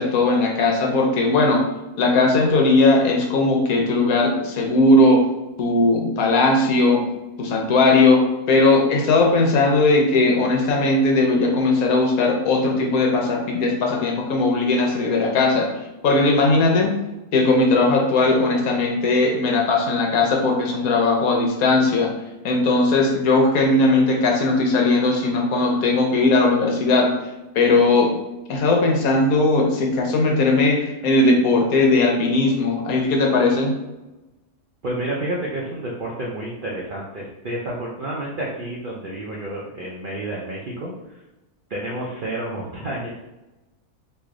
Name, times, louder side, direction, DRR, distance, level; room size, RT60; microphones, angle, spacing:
voice 1, 0.0-1.6 2.0-5.2 5.6-7.0 7.4-8.2 8.5-15.7 16.0-16.9 17.3-22.1 22.4-27.1 27.5-28.1 28.5-33.7, left 2 dB, 70° left, 0 dB, 1.1 m, -18 dB
voice 2, 34.8-41.2 41.7-43.1, right 1 dB, 85° right, -3 dB, 0.4 m, -30 dB
3.1 x 2.6 x 3.6 m, 1.0 s
omnidirectional pair, 1.6 m